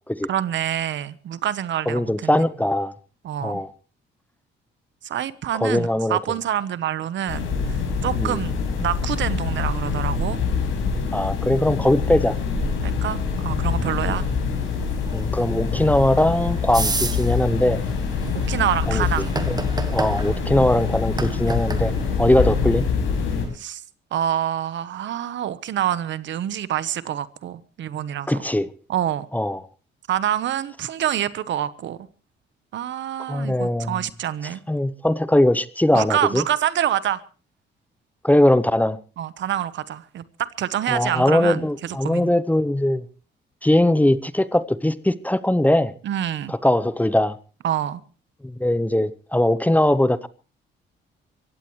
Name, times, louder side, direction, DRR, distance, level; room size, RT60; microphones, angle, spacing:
voice 1, 0.3-2.4 3.2-3.6 5.0-8.5 8.8-10.4 12.8-13.2 13.4-14.2 18.3-19.4 22.2-22.3 23.5-23.8 24.1-28.4 28.9-29.3 30.1-32.0 32.7-34.6 35.9-37.2 39.2-42.3 46.0-46.5 47.6-48.0, right 11 dB, 70° right, 1.1 m, -26 dB
voice 2, 1.9-2.9 3.4-3.7 5.6-6.2 8.2-8.4 11.1-12.3 14.0-14.1 15.1-17.8 18.9-19.0 19.5-19.6 19.9-21.9 22.2-22.8 28.3-28.7 29.3-29.6 33.3-34.0 34.7-36.4 38.2-39.0 40.9-43.1 43.6-45.9 46.5-47.4 48.4-50.3, left 1 dB, 10° left, 0.8 m, -20 dB
sound 1, 7.3-23.4, left 5 dB, 90° left, 6.1 m, -25 dB
sound 2, 14.2-22.2, right 3 dB, 20° right, 1.6 m, -33 dB
23.5 x 16.0 x 3.2 m
cardioid pair, 90°, 20 cm